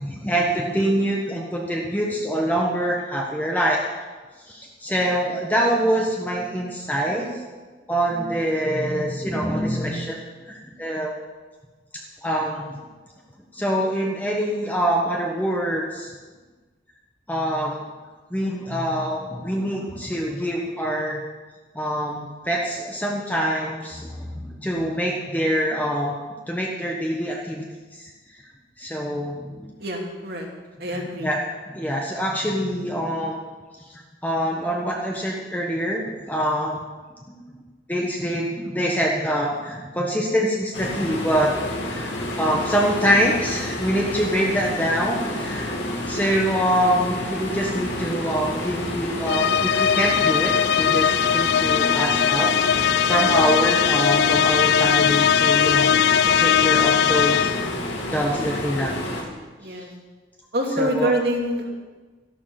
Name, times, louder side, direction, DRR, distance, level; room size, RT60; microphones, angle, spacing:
voice 1, 0.0-3.8 4.5-7.3 7.9-10.1 10.5-11.1 11.9-12.7 13.5-16.1 17.3-17.8 18.3-21.2 21.7-26.2 26.5-27.7 27.9-28.1 28.8-29.7 31.2-31.4 31.7-33.4 33.9-36.8 37.3-37.4 37.9-41.5 41.9-45.7 46.0-57.5 58.1-59.0 59.7-59.8 60.8-61.1, equal, 10° left, -1 dB, 1.3 m, -25 dB
voice 2, 29.8-30.5 30.8-31.3 59.6-59.9 60.5-61.7, equal, 55° right, 0 dB, 2.5 m, -25 dB
sound 1, 40.7-59.2, left 1 dB, 85° left, 2.9 m, -30 dB
sound 2, 49.3-57.8, left 8 dB, 65° left, 0.3 m, -20 dB
13.5 x 11.5 x 5.9 m, 1.3 s
head